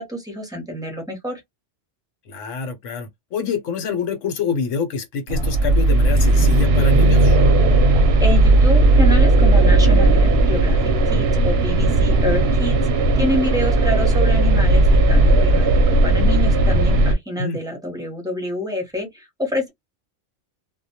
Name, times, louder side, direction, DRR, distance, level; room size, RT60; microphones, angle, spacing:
voice 1, 0.0-1.4 7.8-12.8 13.2-19.7, equal, 5° right, 0.6 m, -27 dB
voice 2, 2.3-7.4 17.3-17.6, left 5 dB, 75° left, 1.0 m, -26 dB
sound 1, 5.3-17.1, right 2 dB, 65° right, 0.7 m, -15 dB
2.2 x 2.1 x 2.7 m
omnidirectional pair, 1.3 m